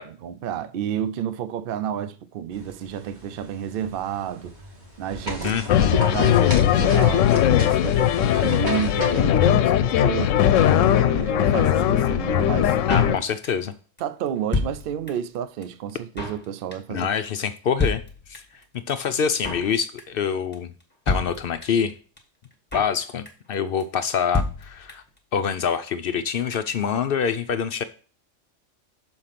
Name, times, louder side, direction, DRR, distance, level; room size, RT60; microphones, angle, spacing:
voice 1, 0.1-4.6 5.0-10.4 11.0-13.2 14.0-17.1, right 9 dB, 60° right, 0.6 m, -31 dB
sound 1, 2.5-9.2, right 1 dB, 35° right, 2.1 m, -36 dB
voice 2, 5.4-5.9 12.9-13.7 16.9-18.0 18.3-18.4 18.9-20.7 21.1-21.9 22.7-25.0 25.3-27.8, left 7 dB, 60° left, 0.6 m, -25 dB
sound 2, 5.7-13.2, left 10 dB, 85° left, 0.9 m, -19 dB
Drum kit, 12.9-13.7 14.0-14.1 14.3-15.4 15.6-15.7 15.9-16.4 16.7-17.0 17.3-17.4 17.5-17.6 17.8-18.6 18.9-19.0 19.2-19.7 20.0-20.3 20.5-20.6 20.8-20.9 21.1-21.9 22.2-22.3 22.4-23.0 23.3-23.5 23.8-23.9 24.1-24.2 24.3-25.2 25.4-25.5 25.7-25.8, left 3 dB, 10° left, 1.4 m, -28 dB
6.6 x 4.4 x 5.7 m
omnidirectional pair, 1.3 m